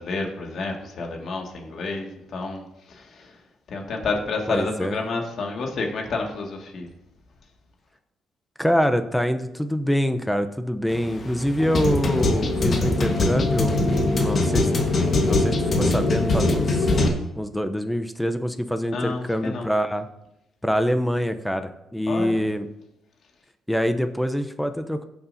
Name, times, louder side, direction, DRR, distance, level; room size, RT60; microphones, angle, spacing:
voice 1, 0.0-3.3 3.7-6.9 18.9-19.7 22.1-22.4, left 3 dB, 60° left, 1 dB, 2.0 m, -30 dB
voice 2, 4.5-5.0 8.6-13.8 14.1-14.7 15.3-16.9 17.4-20.1 20.6-22.7 23.7-25.0, equal, 5° left, 8 dB, 0.7 m, -25 dB
sound 1, 10.9-17.1, left 2 dB, 45° left, 1.4 m, -22 dB
16.0 x 7.0 x 2.7 m, 0.88 s
cardioid pair, 90°, 0 cm